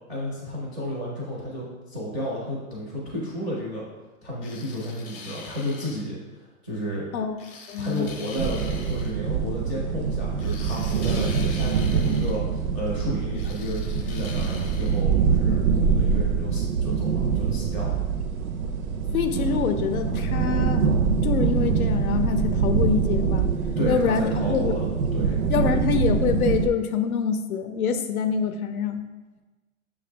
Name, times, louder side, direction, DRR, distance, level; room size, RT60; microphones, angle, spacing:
voice 1, 0.1-3.8 4.2-6.2 6.6-7.0 7.8-18.0 23.8-24.9 25.1-25.4, equal, ahead, -11 dB, 0.4 m, -32 dB
sound 1, 4.4-6.1 7.4-9.2 10.4-12.4 13.3-15.0, left 4 dB, 40° left, 0.7 m, -43 dB
voice 2, 7.7-8.1 19.1-20.9 21.2-23.5 23.9-24.7 25.5-29.0, left 6 dB, 90° left, 8 dB, 0.6 m, -25 dB
sound 2, 8.4-26.7, right 6 dB, 85° right, 0.6 m, -24 dB
6.7 x 2.4 x 3.3 m, 1.2 s
hypercardioid pair, 155°, 42 cm